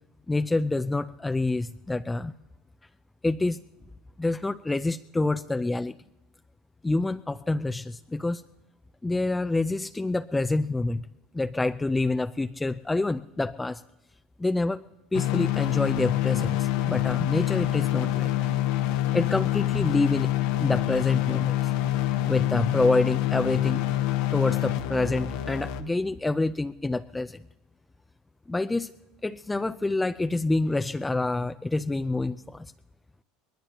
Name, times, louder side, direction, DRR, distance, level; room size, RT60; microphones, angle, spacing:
voice 1, 0.3-2.3 3.2-3.6 4.2-5.9 6.8-8.4 9.0-11.1 11.3-13.8 14.4-14.8 15.1-18.3 19.1-20.3 20.6-21.7 22.3-23.9 24.3-27.4 28.5-28.9 29.2-32.7, left 2 dB, 10° left, 9 dB, 0.4 m, -27 dB
sound 1, 15.1-25.8, left 14 dB, 75° left, 1.1 m, -26 dB
20.5 x 19.5 x 2.9 m, 1.0 s
supercardioid pair, 105°, 0 cm